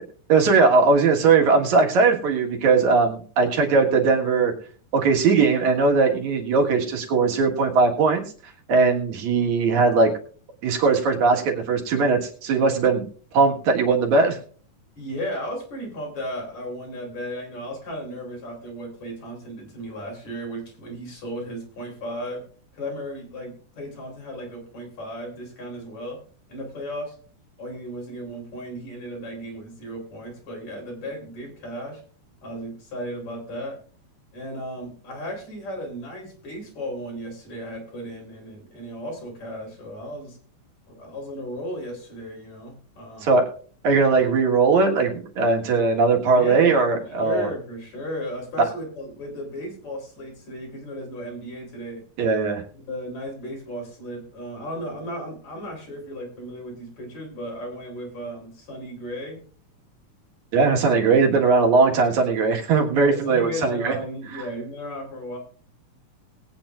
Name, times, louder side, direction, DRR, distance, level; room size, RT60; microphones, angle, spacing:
voice 1, 0.3-4.5 4.9-8.2 8.7-10.1 10.6-13.1 13.3-14.4 43.2-43.5 43.8-47.5 52.2-52.6 60.5-63.9, right 4 dB, 75° right, 2 dB, 3.0 m, -19 dB
voice 2, 15.0-22.4 22.7-26.2 26.5-27.2 27.6-32.0 32.4-33.8 34.3-40.4 40.9-43.3 46.2-52.0 52.9-59.4 62.9-65.4, equal, 65° left, -1 dB, 5.1 m, -35 dB
20.0 x 8.9 x 2.5 m, 0.43 s
omnidirectional pair, 3.4 m